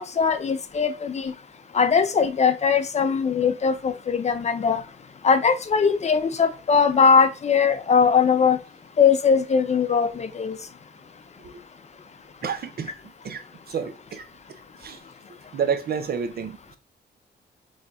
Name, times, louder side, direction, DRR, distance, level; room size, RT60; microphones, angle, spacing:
voice 1, 0.0-1.3 1.7-4.8 5.2-8.6 9.0-10.6, left 6 dB, 40° left, 0.5 m, -20 dB
voice 2, 12.4-12.9 13.2-14.3 14.8-15.0 15.5-16.8, right 7 dB, 60° right, 0.7 m, -29 dB
4.0 x 3.2 x 3.5 m
cardioid pair, 120°, 18 cm